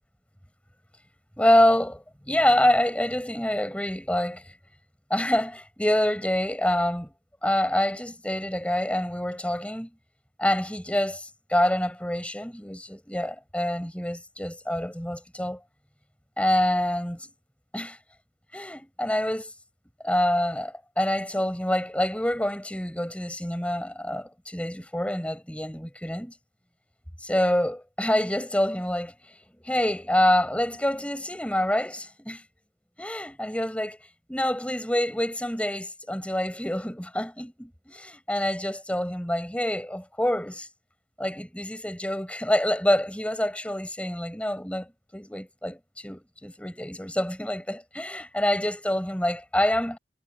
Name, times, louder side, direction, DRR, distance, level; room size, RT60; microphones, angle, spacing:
voice 1, 1.4-4.5 5.1-7.1 7.4-9.9 10.4-15.6 16.4-17.3 17.7-18.0 18.5-19.5 20.0-26.3 27.2-29.1 29.6-32.4 33.0-34.0 34.3-40.7 41.2-50.0, left 1 dB, 5° left, 7.0 m, -26 dB
head